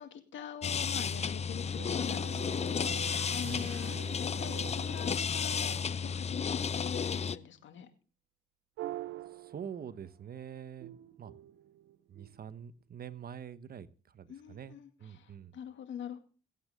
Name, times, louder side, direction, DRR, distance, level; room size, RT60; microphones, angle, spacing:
voice 1, 0.0-3.9 4.2-7.9 14.3-16.2, left 9 dB, 70° left, 8 dB, 2.2 m, -44 dB
sound 1, 0.6-7.4, left 6 dB, 35° left, 0.6 m, -33 dB
sound 2, 1.8-5.9 8.8-10.3 10.8-12.6, right 15 dB, 85° right, 0.9 m, -46 dB
voice 2, 9.3-11.3 12.1-15.6, right 8 dB, 50° right, 14 dB, 1.0 m, -45 dB
21.5 x 8.5 x 3.6 m, 0.38 s
cardioid pair, 90°, 20 cm